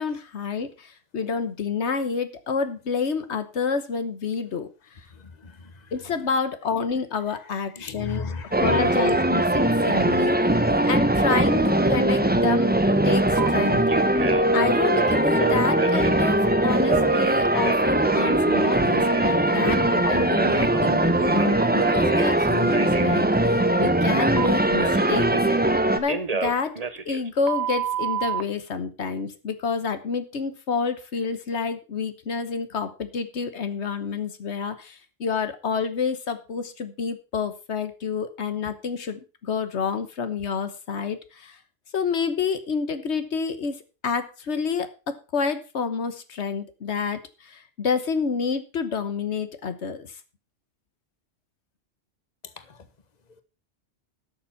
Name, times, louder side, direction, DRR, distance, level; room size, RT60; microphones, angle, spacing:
voice 1, 0.0-4.7 5.9-8.3 8.6-10.6 10.8-12.7 13.0-13.8 14.5-25.3 25.9-26.7 27.0-41.6 41.9-50.1, left 5 dB, 85° left, 1.4 m, -28 dB
voice 2, 5.1-5.7 7.8-9.0 52.7-52.8, left 3 dB, 40° left, 1.4 m, -35 dB
sound 1, 8.5-26.0, right 1 dB, 10° right, 0.8 m, -21 dB
Telephone, 13.4-13.5 13.9-14.5 14.9-16.3 16.8-19.3 19.6-22.4 22.7-23.1 24.4-25.7 26.1-28.4, right 6 dB, 35° right, 1.0 m, -30 dB
12.5 x 7.0 x 5.8 m
omnidirectional pair, 1.1 m